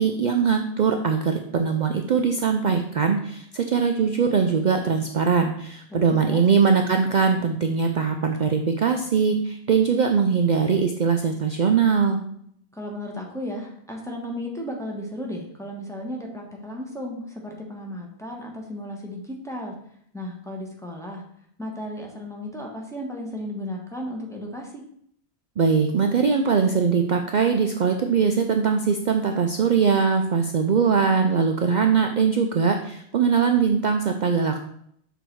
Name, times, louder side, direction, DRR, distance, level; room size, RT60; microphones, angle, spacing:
voice 1, 0.0-12.2 25.6-34.6, right 6 dB, 55° right, 4 dB, 0.5 m, -21 dB
voice 2, 5.9-6.4 12.7-19.8 20.1-21.2 21.6-24.8, left 1 dB, 5° left, -1 dB, 1.1 m, -34 dB
6.5 x 4.0 x 4.5 m, 0.68 s
omnidirectional pair, 1.2 m